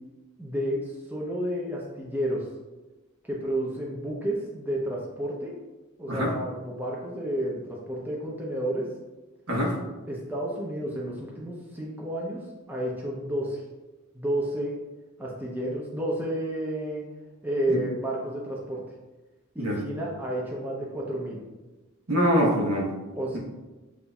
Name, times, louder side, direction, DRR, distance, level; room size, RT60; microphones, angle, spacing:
voice 1, 0.4-2.5 3.2-5.5 6.0-8.9 10.1-13.6 14.1-14.8 15.2-17.0 17.4-18.8 19.5-21.4 23.2-23.4, right 1 dB, 10° right, -4 dB, 0.6 m, -31 dB
voice 2, 22.1-22.9, equal, 75° right, -2 dB, 1.2 m, -24 dB
7.0 x 2.6 x 2.3 m, 1.1 s
head